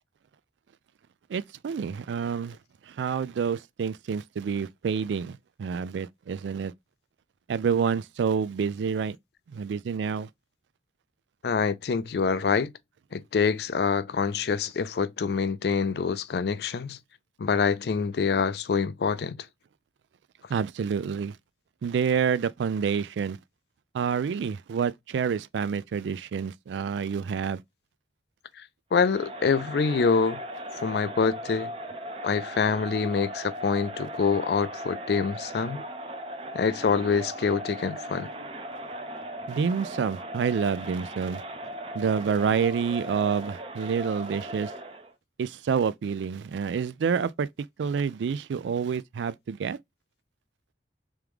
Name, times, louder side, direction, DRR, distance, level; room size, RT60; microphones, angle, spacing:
voice 1, 1.3-2.6 2.9-6.7 7.5-9.2 9.5-10.3 20.5-21.4 21.8-23.4 23.9-27.6 39.5-41.4 41.9-44.7 45.4-47.5 47.8-49.8, right 6 dB, 90° right, 0.3 m, -28 dB
voice 2, 11.4-12.7 13.1-17.0 17.4-19.5 28.9-30.4 30.8-31.7 32.2-35.8 36.5-38.3, left 5 dB, 65° left, 0.4 m, -26 dB
Crowd, 28.9-45.1, right 1 dB, 35° right, 0.6 m, -38 dB
3.6 x 3.1 x 3.4 m
head